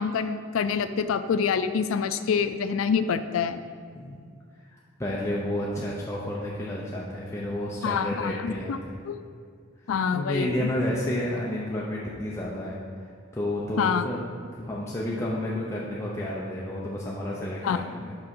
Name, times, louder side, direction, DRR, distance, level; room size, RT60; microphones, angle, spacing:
voice 1, 0.0-3.6 7.8-8.8 9.0-9.2 9.9-10.5 13.8-14.1 17.6-17.9, left 6 dB, 85° left, 11 dB, 0.4 m, -26 dB
voice 2, 4.7-9.0 10.1-12.8 13.3-14.2 14.5-18.2, left 1 dB, 15° left, -5 dB, 0.6 m, -31 dB
6.1 x 3.8 x 6.1 m, 2.2 s
head